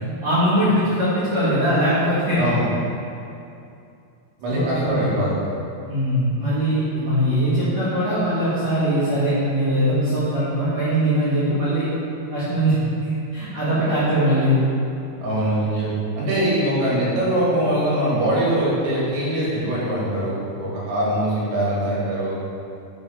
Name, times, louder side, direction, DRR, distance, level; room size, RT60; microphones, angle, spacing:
voice 1, 0.2-2.4 4.5-5.2 5.9-11.9 12.3-14.6, equal, 70° right, -12 dB, 1.6 m, -21 dB
voice 2, 4.4-5.3 15.2-15.9 16.1-22.3, right 1 dB, 85° right, -7 dB, 4.4 m, -22 dB
8.0 x 3.6 x 5.4 m, 2.6 s
omnidirectional pair, 5.7 m